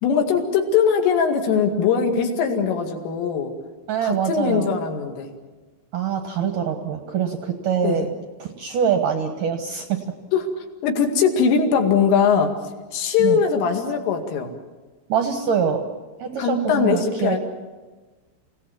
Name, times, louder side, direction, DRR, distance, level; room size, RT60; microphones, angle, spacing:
voice 1, 0.0-3.5 4.0-5.3 7.8-8.1 10.3-10.5 10.8-12.5 12.9-14.5 16.4-17.4, left 6 dB, 75° left, 4 dB, 4.7 m, -21 dB
voice 2, 3.9-4.7 5.9-8.1 8.4-10.0 13.2-13.4 15.1-15.8 16.2-17.4, right 7 dB, 70° right, 5 dB, 2.0 m, -24 dB
28.5 x 18.0 x 7.3 m, 1.3 s
omnidirectional pair, 6.0 m